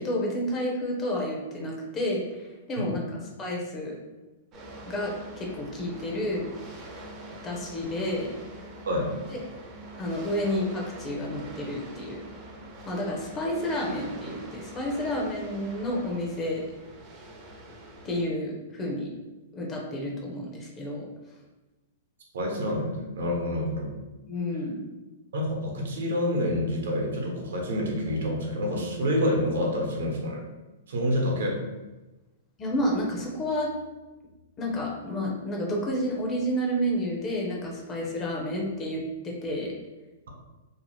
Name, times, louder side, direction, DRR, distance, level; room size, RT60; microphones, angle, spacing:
voice 1, 0.0-3.0 3.4-4.0 4.9-6.5 7.4-8.3 10.0-12.2 12.9-16.6 18.0-19.1 19.5-21.1 24.3-24.8 32.6-33.7 34.6-39.7, equal, 20° left, -1 dB, 0.6 m, -30 dB
sound 1, 4.5-18.2, right 1 dB, 25° right, 0.5 m, -44 dB
voice 2, 22.3-23.9 25.3-30.4 30.9-31.6, left 1 dB, 80° right, 0 dB, 0.8 m, -27 dB
2.7 x 2.1 x 3.1 m, 1.1 s
hypercardioid pair, 145°, 0 cm